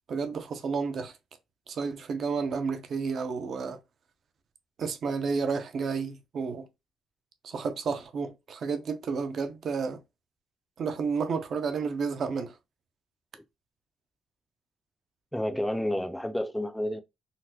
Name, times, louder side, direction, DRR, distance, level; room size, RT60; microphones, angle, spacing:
voice 1, 0.1-1.1 1.7-3.8 4.8-6.7 7.4-10.0 10.8-12.6, right 5 dB, 55° right, 0.6 m, -31 dB
voice 2, 15.3-17.0, left 1 dB, 5° left, 0.5 m, -30 dB
4.0 x 2.1 x 2.8 m
cardioid pair, 90°, 0 cm